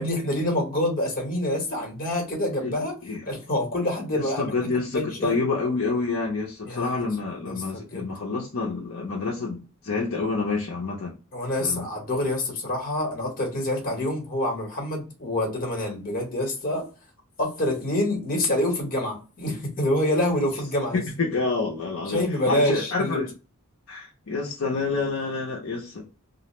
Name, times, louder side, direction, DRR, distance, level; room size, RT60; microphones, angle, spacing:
voice 1, 0.0-2.9 3.2-5.4 6.6-7.0 7.4-8.1 11.3-16.9 17.4-21.0 22.1-23.2, left 1 dB, 40° left, 1.0 m, -26 dB
voice 2, 4.1-11.1 11.6-11.8 20.9-23.3 23.9-26.0, left 4 dB, 60° left, 0.5 m, -28 dB
2.4 x 2.0 x 2.9 m
head